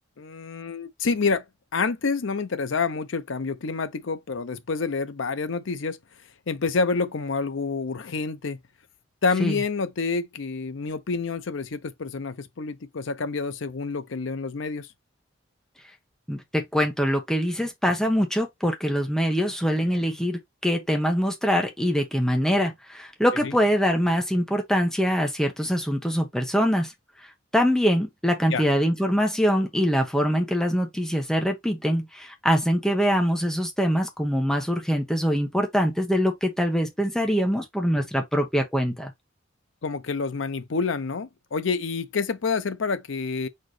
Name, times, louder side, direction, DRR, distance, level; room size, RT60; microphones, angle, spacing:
voice 1, 0.2-1.4 1.7-6.0 6.5-8.6 9.2-14.9 23.4-23.5 28.5-28.6 39.8-43.5, left 4 dB, 70° left, 0.6 m, -28 dB
voice 2, 16.3-26.9 27.5-39.1, equal, 5° left, 1.0 m, -24 dB
4.3 x 3.8 x 3.2 m
head